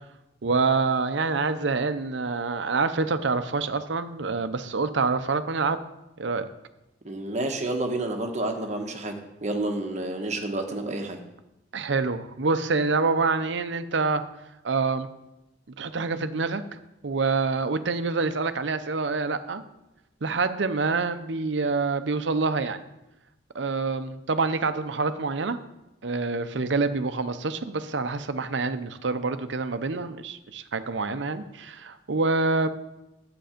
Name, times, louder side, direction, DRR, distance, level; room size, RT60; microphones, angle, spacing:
voice 1, 0.4-5.8 6.2-6.5 11.7-14.2 14.6-15.1 15.8-16.6 17.0-19.6 20.2-22.8 23.5-25.6 26.0-32.7, right 4 dB, 70° right, 11 dB, 0.7 m, -26 dB
voice 2, 7.0-9.1 9.4-11.2, right 2 dB, 40° right, 3 dB, 1.2 m, -29 dB
10.5 x 7.9 x 5.1 m, 0.94 s
head